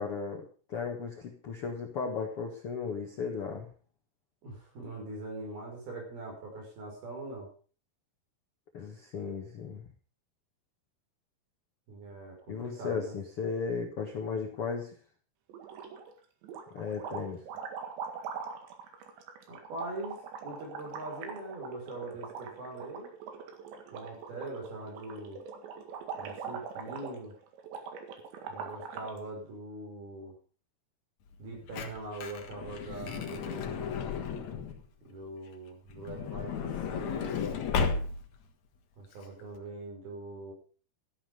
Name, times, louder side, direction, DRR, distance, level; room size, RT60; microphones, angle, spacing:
voice 1, 0.0-3.7 8.7-9.8 12.5-14.9 16.7-17.4, left 5 dB, 80° left, 2 dB, 1.3 m, -35 dB
voice 2, 4.4-7.5 11.9-13.2 19.5-20.2 20.4-23.1 23.9-25.4 26.2-27.3 28.5-30.4 31.4-33.9 35.0-37.6 39.0-40.5, right 2 dB, 55° right, 0 dB, 7.2 m, -42 dB
sound 1, 15.5-16.1 16.4-29.2, right 6 dB, 70° right, 4.0 m, -42 dB
Truck / Door, 31.3-34.9 35.9-38.4 39.1-39.2 39.4-39.6, left 6 dB, 60° left, 2.0 m, -34 dB
13.0 x 11.5 x 5.3 m, 0.39 s
omnidirectional pair, 5.4 m